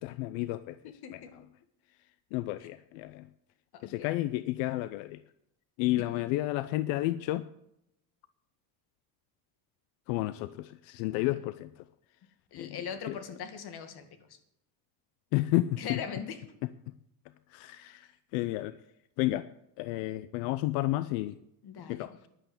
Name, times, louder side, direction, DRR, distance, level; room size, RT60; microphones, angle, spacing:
voice 1, 0.0-0.8 1.1-1.2 2.3-3.3 3.8-5.2 5.8-7.5 10.1-11.9 12.5-12.8 13.1-13.2 15.3-16.0 16.9-17.0 17.5-18.8 19.2-19.5 19.8-21.4 21.9-22.1, left 16 dB, 90° left, 15 dB, 0.6 m, -31 dB
voice 2, 0.8-1.3 2.6-2.7 3.7-4.1 6.1-6.2 11.1-11.2 12.5-14.4 15.8-16.4 21.6-22.1, left 7 dB, 60° left, 9 dB, 2.2 m, -41 dB
11.0 x 9.3 x 8.0 m, 0.80 s
cardioid pair, 110°, 44 cm